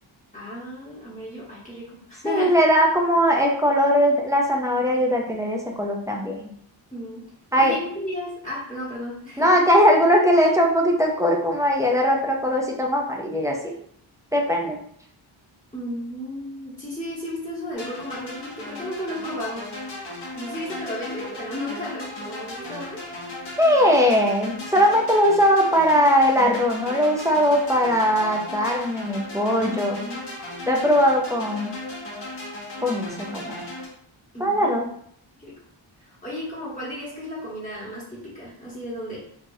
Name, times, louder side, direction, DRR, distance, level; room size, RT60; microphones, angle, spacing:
voice 1, 0.3-2.5 6.9-7.2 7.6-9.5 15.7-19.7 20.3-23.0 29.6-30.2 34.3-34.8 35.4-35.5 36.0-39.2, left 1 dB, 15° left, -8 dB, 1.2 m, -34 dB
voice 2, 2.2-6.5 7.5-7.8 9.4-13.7 14.3-14.8 23.6-30.0 30.7-31.8 32.8-33.7 34.4-34.9, equal, 5° right, -1 dB, 0.4 m, -20 dB
sound 1, 17.7-33.9, left 1 dB, 55° left, 1.2 m, -36 dB
3.3 x 2.4 x 2.6 m, 0.63 s
wide cardioid pair, 125°, 48 cm